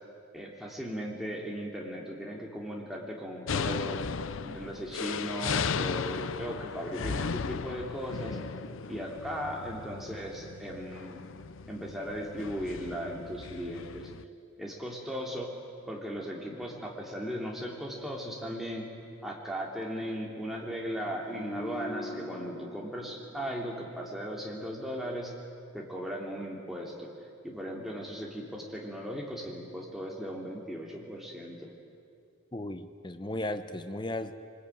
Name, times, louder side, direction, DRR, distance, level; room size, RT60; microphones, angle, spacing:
voice 1, 0.3-4.0 4.4-8.4 8.9-11.2 11.7-14.1 14.6-15.5 15.9-18.9 19.2-25.3 25.7-27.1 27.4-31.7, equal, ahead, -2 dB, 3.2 m, -37 dB
sound 1, 3.5-14.2, left 5 dB, 70° left, 0.6 m, -36 dB
sound 2, 21.2-24.5 24.8-25.0, left 1 dB, 20° right, 6.6 m, -43 dB
voice 2, 32.5-34.3, left 1 dB, 20° left, 9 dB, 0.8 m, -35 dB
23.5 x 21.0 x 9.3 m, 2.4 s
head